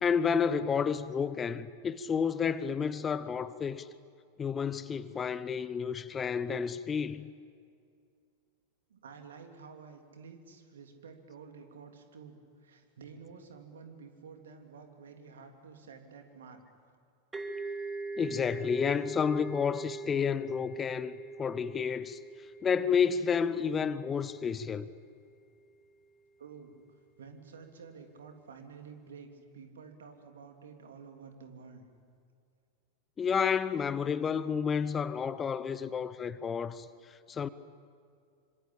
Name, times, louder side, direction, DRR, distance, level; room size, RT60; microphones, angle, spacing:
voice 1, 0.0-3.9 4.4-7.3 18.2-21.1 21.4-22.2 22.6-24.9 33.2-36.9 37.3-37.5, left 6 dB, 20° left, 0.8 m, -30 dB
voice 2, 8.9-16.6 26.4-26.7 27.2-31.9, right 5 dB, 65° right, 3.2 m, -50 dB
sound 1, 17.3-24.9, right 3 dB, 15° right, 2.6 m, -42 dB
26.5 x 25.5 x 8.6 m
figure-of-eight pair, 90°, 0 cm